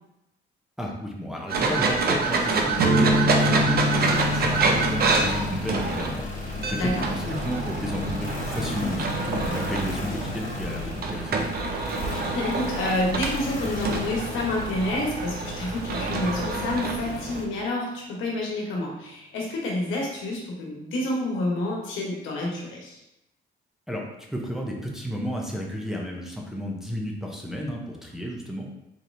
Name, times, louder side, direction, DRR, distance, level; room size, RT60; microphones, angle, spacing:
voice 1, 0.8-11.5 23.9-24.0 24.3-28.7, equal, ahead, -2 dB, 0.7 m, -32 dB
sound 1, 1.5-17.4, right 3 dB, 50° right, 0.6 m, -27 dB
sound 2, 2.8-10.6, equal, 80° right, 0.9 m, -29 dB
sound 3, 3.2-17.5, left 2 dB, 40° left, 1.1 m, -36 dB
voice 2, 12.1-23.0, left 1 dB, 90° left, -2 dB, 1.1 m, -29 dB
4.3 x 3.1 x 2.6 m, 0.89 s
cardioid pair, 90°, 20 cm